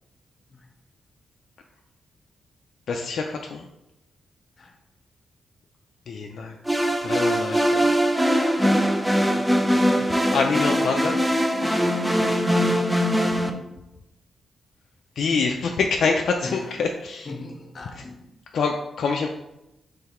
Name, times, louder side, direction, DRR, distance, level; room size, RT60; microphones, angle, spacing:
voice 1, 2.9-3.7 6.1-6.5 7.0-7.6 8.6-8.9 9.7-9.9 10.3-11.3 15.2-17.3 18.0-18.1 18.5-19.3, left 4 dB, 75° left, 2 dB, 0.4 m, -25 dB
sound 1, 6.7-13.5, equal, 5° right, 0.5 m, -21 dB
voice 2, 8.5-8.9 13.3-13.7 16.4-16.7 17.3-18.2, left 2 dB, 50° left, 5 dB, 0.8 m, -38 dB
3.9 x 3.1 x 4.3 m, 0.92 s
cardioid pair, 85°, 0 cm